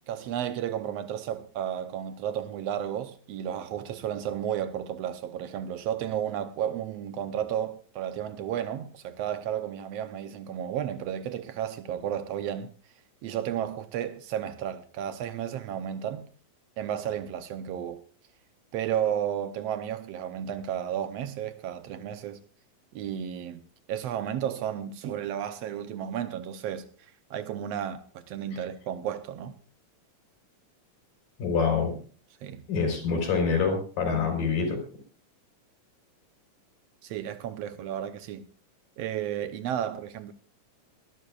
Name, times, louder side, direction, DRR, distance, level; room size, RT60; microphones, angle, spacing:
voice 1, 0.1-12.7 13.2-16.3 16.8-18.0 18.7-22.4 22.9-23.6 23.9-26.9 27.3-29.6 32.4-32.6 37.0-38.5 39.0-40.3, right 10 dB, 80° right, 1.4 m, -33 dB
voice 2, 31.4-31.9 32.7-34.8, left 5 dB, 90° left, 5.9 m, -26 dB
22.0 x 12.0 x 2.4 m
omnidirectional pair, 3.9 m